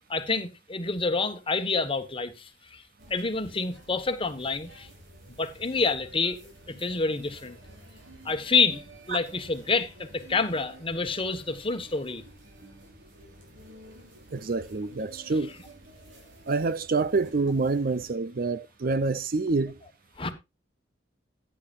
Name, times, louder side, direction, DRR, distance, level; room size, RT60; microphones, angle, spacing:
voice 1, 0.1-2.8 3.1-4.9 5.3-6.4 6.7-7.6 8.2-12.2 15.5-15.6 20.2-20.3, left 4 dB, 30° left, 1.3 m, -28 dB
sound 1, 3.0-18.1, right 1 dB, 80° right, 5.3 m, -51 dB
voice 2, 14.3-15.5 16.5-19.8, right 3 dB, 50° right, 0.5 m, -27 dB
14.5 x 10.0 x 2.5 m
head